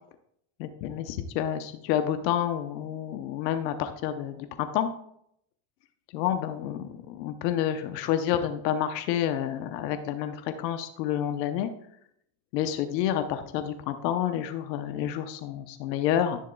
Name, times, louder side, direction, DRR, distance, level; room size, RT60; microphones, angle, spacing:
voice 1, 0.6-4.9 6.1-11.7 12.5-16.4, left 10 dB, 85° left, 9 dB, 0.9 m, -29 dB
10.5 x 6.5 x 2.3 m, 0.71 s
supercardioid pair, 115°, 49 cm